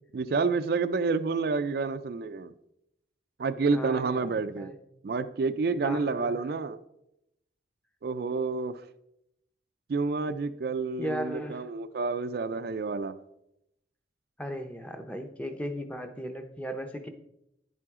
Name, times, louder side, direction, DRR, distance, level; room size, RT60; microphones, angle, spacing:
voice 1, 0.1-2.5 3.4-4.7 5.0-6.8 8.0-8.8 9.9-13.2, right 4 dB, 55° right, 11 dB, 0.4 m, -29 dB
voice 2, 3.7-4.2 4.6-4.7 5.8-6.4 11.0-11.7 14.4-17.1, equal, 5° left, 6 dB, 0.6 m, -36 dB
10.0 x 7.6 x 3.6 m, 0.83 s
head